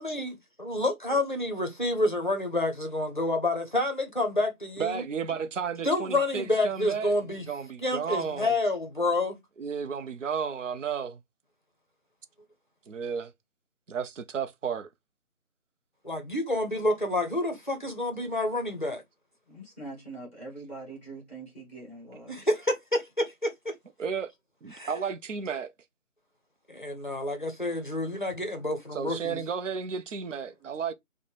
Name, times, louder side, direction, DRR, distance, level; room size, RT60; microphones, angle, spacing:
voice 1, 0.0-5.0 5.8-7.4 7.8-9.4 16.0-19.0 22.3-23.7 24.7-24.9 26.7-29.4, left 2 dB, 35° left, 0.6 m, -28 dB
voice 2, 4.8-7.1 7.5-8.6 9.6-11.2 12.9-13.3 13.9-14.9 24.0-24.3 24.6-25.7 28.9-30.9, right 6 dB, 60° right, 0.5 m, -33 dB
voice 3, 19.5-22.3, right 2 dB, 10° right, 1.2 m, -43 dB
4.1 x 2.1 x 3.1 m
figure-of-eight pair, 170°, 43 cm